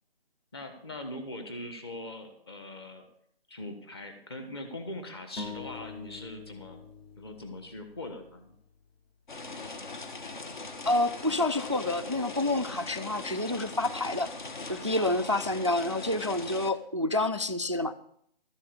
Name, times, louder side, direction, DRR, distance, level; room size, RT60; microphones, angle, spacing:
voice 1, 0.5-3.0 3.5-6.8 7.2-8.5 12.6-12.9 14.9-15.3, left 1 dB, 25° left, 6 dB, 1.5 m, -41 dB
sound 1, 5.4-9.0, left 4 dB, 80° left, 2.3 m, -45 dB
sound 2, 9.3-16.7, left 3 dB, 50° left, 1.4 m, -41 dB
voice 2, 10.9-14.3 14.7-17.9, left 2 dB, 30° right, 12 dB, 0.4 m, -28 dB
13.0 x 7.4 x 7.0 m, 0.68 s
hypercardioid pair, 170°, 30 cm